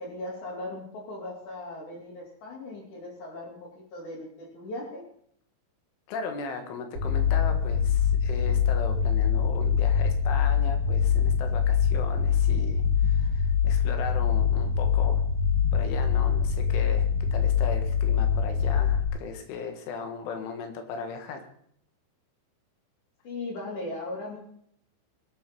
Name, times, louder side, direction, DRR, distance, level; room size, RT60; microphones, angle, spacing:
voice 1, 0.0-5.1 23.2-24.4, left 2 dB, 45° left, -6 dB, 4.4 m, -38 dB
voice 2, 6.1-15.3 15.7-21.4, left 5 dB, 85° left, 6 dB, 4.1 m, -37 dB
sound 1, 6.9-19.0, left 7 dB, 50° right, 2.1 m, -24 dB
22.0 x 7.9 x 5.3 m, 0.66 s
omnidirectional pair, 5.4 m